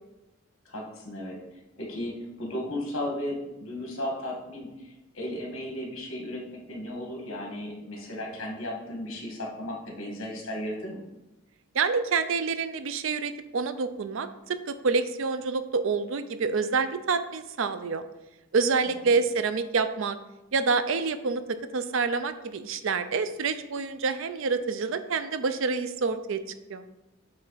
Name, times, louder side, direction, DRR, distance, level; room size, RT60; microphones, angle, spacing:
voice 1, 0.6-1.4 1.8-11.0 18.9-19.1, left 1 dB, 70° left, -1 dB, 1.7 m, -35 dB
voice 2, 11.7-18.0 18.5-20.2 20.5-26.4 26.7-26.8, right 4 dB, 65° right, 11 dB, 0.4 m, -27 dB
8.1 x 3.3 x 4.0 m, 0.97 s
head